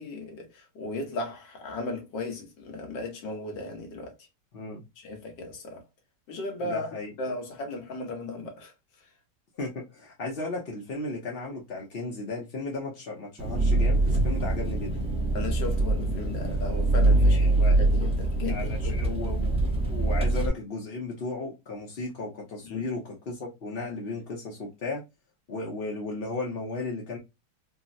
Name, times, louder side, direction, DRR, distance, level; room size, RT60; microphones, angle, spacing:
voice 1, 0.0-4.1 5.0-5.8 6.3-6.9 7.2-8.7 15.3-19.2 22.6-22.9, left 3 dB, 85° left, 1.7 m, -36 dB
voice 2, 6.6-7.1 9.6-15.0 17.2-17.8 18.5-19.6 19.9-25.0 25.5-27.2, left 3 dB, 50° left, 0.7 m, -35 dB
Engine, 13.4-20.5, right 2 dB, 5° right, 0.5 m, -24 dB
3.8 x 2.0 x 2.5 m
omnidirectional pair, 1.9 m